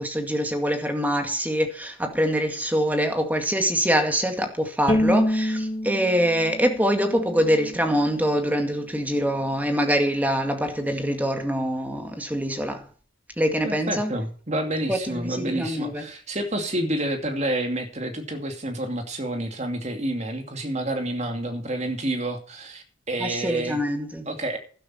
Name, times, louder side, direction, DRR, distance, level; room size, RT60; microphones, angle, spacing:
voice 1, 0.0-12.9 13.4-14.1 14.9-16.1 23.2-24.2, equal, 10° right, 2.0 m, -24 dB
Bowed string instrument, 4.9-8.1, left 1 dB, 25° left, 1.7 m, -27 dB
voice 2, 13.6-23.8 24.3-24.6, right 1 dB, 35° right, 2.5 m, -29 dB
12.5 x 12.0 x 4.3 m
head